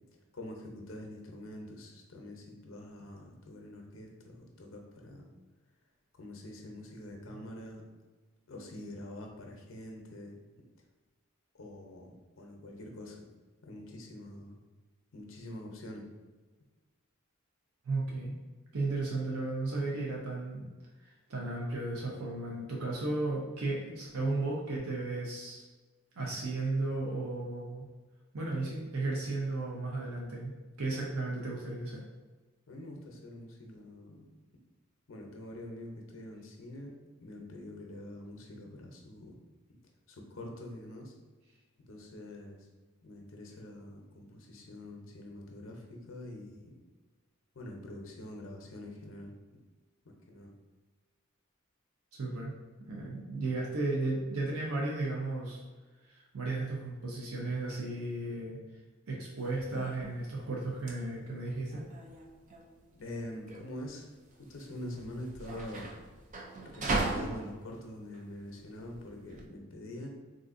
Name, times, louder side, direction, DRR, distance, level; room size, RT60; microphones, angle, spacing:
voice 1, 0.3-5.3 6.2-7.8 8.5-10.4 11.5-13.3 13.6-14.6 15.1-16.0 32.7-34.2 35.1-36.9 37.2-39.3 39.7-39.8 40.1-41.1 41.8-42.7 43.0-46.7 47.5-49.3 50.0-50.5 62.9-64.0 64.4-65.9 66.6-70.1, left 1 dB, 65° left, 1 dB, 0.6 m, -45 dB
voice 2, 17.8-18.3 18.7-20.7 21.0-25.6 26.2-27.9 28.3-30.5 30.8-32.0 52.1-52.5 52.9-55.6 56.0-58.6 59.1-61.8, right 2 dB, 85° right, -3 dB, 0.6 m, -34 dB
sound 1, 59.4-69.4, right 2 dB, 35° right, 0.4 m, -39 dB
3.7 x 2.6 x 2.5 m, 1.3 s
head